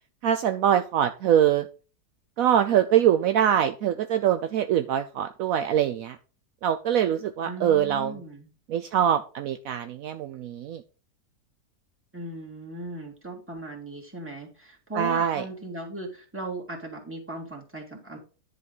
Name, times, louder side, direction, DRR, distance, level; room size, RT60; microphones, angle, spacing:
voice 1, 0.2-1.7 2.4-6.2 6.6-8.1 8.7-10.8 15.0-15.4, right 10 dB, 70° right, 8 dB, 1.0 m, -23 dB
voice 2, 7.4-8.5 12.1-18.2, right 2 dB, 10° right, -2 dB, 2.4 m, -38 dB
10.5 x 4.0 x 5.4 m, 0.36 s
omnidirectional pair, 1.6 m